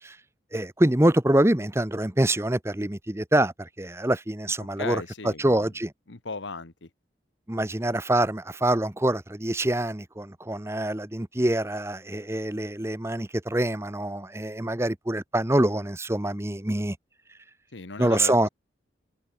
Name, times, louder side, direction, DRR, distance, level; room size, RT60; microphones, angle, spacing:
voice 1, 0.5-5.9 7.5-17.0 18.0-18.5, right 1 dB, 15° right, 0.9 m, -25 dB
voice 2, 4.8-5.7 6.1-6.9 17.7-18.3, left 3 dB, 85° left, 1.5 m, -35 dB
head